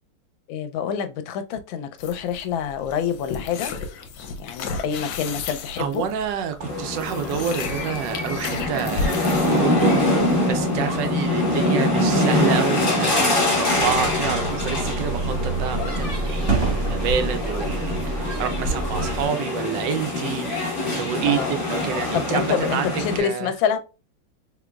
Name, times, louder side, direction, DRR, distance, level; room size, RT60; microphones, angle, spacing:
voice 1, 0.5-3.7 4.4-6.1 10.7-10.9 21.2-21.6 22.1-23.8, left 8 dB, 90° left, 1.3 m, -27 dB
sound 1, 2.0-10.7, left 4 dB, 70° left, 1.1 m, -34 dB
voice 2, 5.8-9.9 10.4-23.5, right 8 dB, 75° right, 1.2 m, -28 dB
sound 2, 6.6-23.2, left 1 dB, 30° left, 1.2 m, -24 dB
sound 3, 13.7-19.3, right 3 dB, 40° right, 1.1 m, -27 dB
3.6 x 3.0 x 2.2 m
omnidirectional pair, 2.1 m